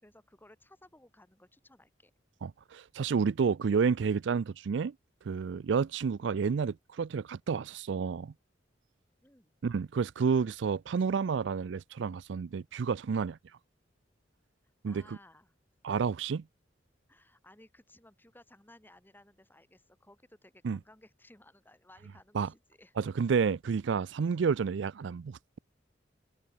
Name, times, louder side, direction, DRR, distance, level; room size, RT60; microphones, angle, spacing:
voice 1, 0.0-2.1 9.2-9.6 14.8-15.5 17.1-22.9, left 1 dB, 10° left, 4.5 m, -59 dB
voice 2, 2.4-4.9 5.3-8.3 9.6-13.4 14.8-15.0 15.8-16.4 20.6-20.8 22.3-22.5 23.0-25.6, right 5 dB, 75° right, 0.4 m, -30 dB
open air
head